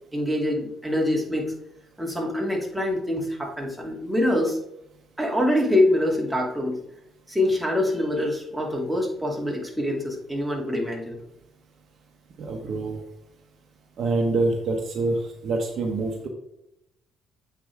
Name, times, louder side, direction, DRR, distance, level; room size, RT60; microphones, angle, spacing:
voice 1, 0.1-1.5 2.0-4.6 5.2-6.8 7.3-11.2, left 1 dB, ahead, -2 dB, 2.6 m, -25 dB
voice 2, 12.4-13.0 14.0-16.3, right 3 dB, 60° right, 3 dB, 1.2 m, -26 dB
8.0 x 4.8 x 3.6 m, 0.81 s
hypercardioid pair, 60°, 0 cm